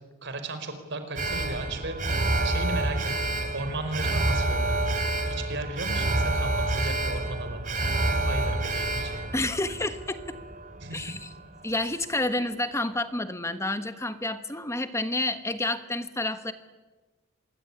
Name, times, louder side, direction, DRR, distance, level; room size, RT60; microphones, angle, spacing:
voice 1, 0.2-2.0 2.4-7.8 8.3-9.3 10.8-11.1, right 2 dB, 60° right, 8 dB, 4.6 m, -36 dB
Alarm, 1.2-11.4 11.8-11.9, right 2 dB, 40° right, 3.6 m, -28 dB
voice 2, 9.3-10.2 10.9-11.3 11.6-16.5, left 2 dB, 15° left, 10 dB, 1.3 m, -29 dB
26.0 x 20.5 x 10.0 m, 1.2 s
head